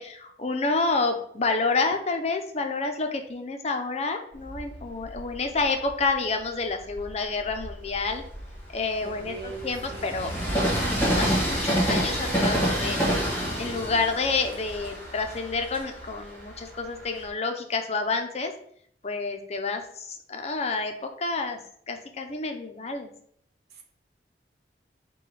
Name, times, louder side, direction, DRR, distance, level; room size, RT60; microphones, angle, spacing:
voice 1, 0.0-8.2 8.7-10.3 10.7-18.5 19.0-21.6 21.9-23.1, left 3 dB, 35° left, 5 dB, 0.6 m, -29 dB
Train, 4.4-6.1 6.7-17.3, equal, 10° left, 1.3 m, -29 dB
voice 2, 9.0-10.2 23.7-23.8, right 3 dB, 60° right, 2 dB, 0.9 m, -40 dB
4.8 x 2.3 x 4.8 m, 0.64 s
head